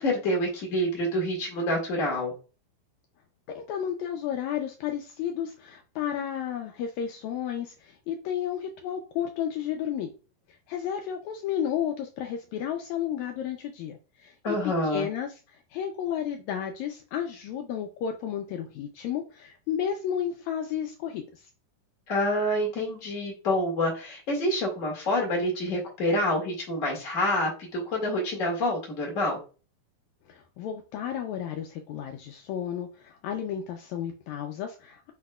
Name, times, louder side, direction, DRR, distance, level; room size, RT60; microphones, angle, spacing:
voice 1, 0.0-2.3 14.4-15.1 22.1-29.4, left 1 dB, 35° left, -1 dB, 1.3 m, -27 dB
voice 2, 3.5-10.1 10.7-14.6 14.9-21.5 30.3-35.1, left 9 dB, 90° left, 4 dB, 1.6 m, -32 dB
8.1 x 2.8 x 2.2 m, 0.35 s
omnidirectional pair, 3.9 m